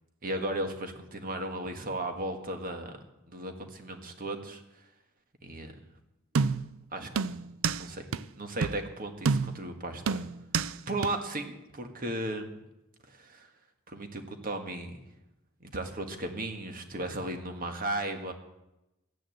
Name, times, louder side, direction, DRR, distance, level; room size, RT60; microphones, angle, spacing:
voice 1, 0.2-2.9 3.3-4.8 5.4-5.8 6.9-7.4 7.8-8.1 8.4-10.3 10.9-12.6 13.1-13.5 13.9-14.9 15.6-18.3, right 1 dB, 45° right, 5 dB, 1.7 m, -35 dB
sound 1, 6.3-6.8 7.2-7.8 8.1-8.2 8.6-8.8 9.2-9.7 10.1-10.7 11.0-11.1, right 5 dB, 70° right, 0.5 m, -28 dB
13.5 x 10.0 x 7.8 m, 0.92 s
head